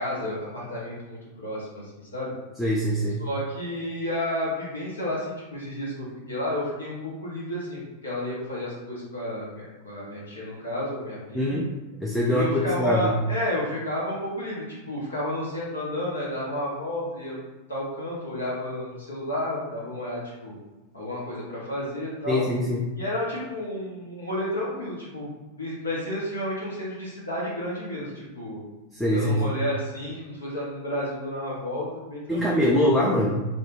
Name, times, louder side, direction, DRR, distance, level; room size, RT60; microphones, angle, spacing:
voice 1, 0.0-1.9 2.1-2.3 3.2-11.6 12.2-17.4 17.7-20.5 20.9-22.5 23.0-25.3 25.6-28.6 29.1-32.6, left 1 dB, 75° left, -5 dB, 0.7 m, -31 dB
voice 2, 2.6-3.3 11.3-11.7 12.0-13.1 22.3-22.8 28.9-29.6 32.3-33.5, left 1 dB, 5° left, -4 dB, 0.4 m, -23 dB
2.3 x 2.2 x 3.1 m, 1.1 s
figure-of-eight pair, 90°, 0 cm